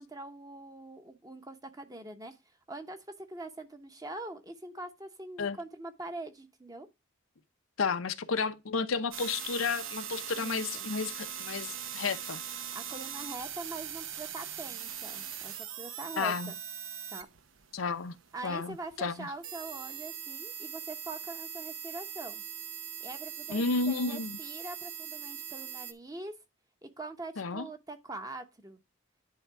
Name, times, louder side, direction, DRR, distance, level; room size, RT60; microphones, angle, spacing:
voice 1, 0.0-2.4 2.7-6.9 10.4-10.9 12.7-16.6 17.1-17.3 18.3-22.4 23.0-26.3 26.8-28.8, right 2 dB, 20° right, 0.9 m, -43 dB
voice 2, 7.8-12.4 16.2-16.5 17.7-19.3 23.5-24.4 27.4-27.7, left 4 dB, 90° left, 0.8 m, -32 dB
sound 1, 9.1-25.9, right 9 dB, 75° right, 0.9 m, -41 dB
10.5 x 3.6 x 4.8 m
head